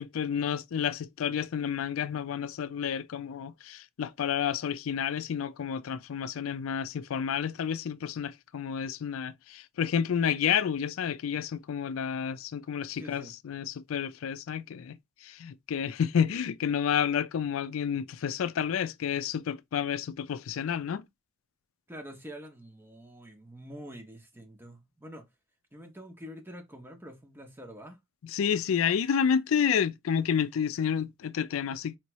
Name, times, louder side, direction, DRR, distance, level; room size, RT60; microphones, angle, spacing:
voice 1, 0.0-21.0 28.2-32.0, left 8 dB, 75° left, 0.4 m, -30 dB
voice 2, 12.9-13.3 21.9-25.2 25.7-28.0, equal, 10° right, 0.7 m, -46 dB
4.5 x 2.8 x 3.0 m
head